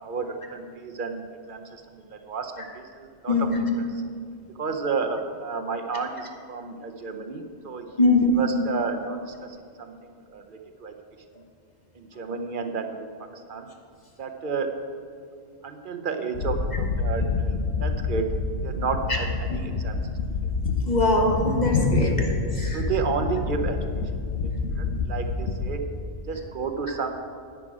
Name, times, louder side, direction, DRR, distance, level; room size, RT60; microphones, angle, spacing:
voice 1, 0.0-3.5 3.8-3.9 4.6-7.9 8.4-10.9 11.9-13.0 13.3-13.7 14.2-14.8 15.6-18.3 18.6-20.0 20.4-20.5 22.6-23.8 24.4-25.8 26.3-27.1, right 5 dB, 55° right, 6 dB, 0.9 m, -32 dB
voice 2, 3.3-3.7 8.0-8.4 20.8-22.3 22.5-22.9, left 2 dB, 45° left, 1 dB, 1.4 m, -22 dB
sound 1, 16.3-25.8, left 4 dB, 90° left, 1.1 m, -27 dB
10.0 x 9.1 x 4.8 m, 2.3 s
omnidirectional pair, 1.1 m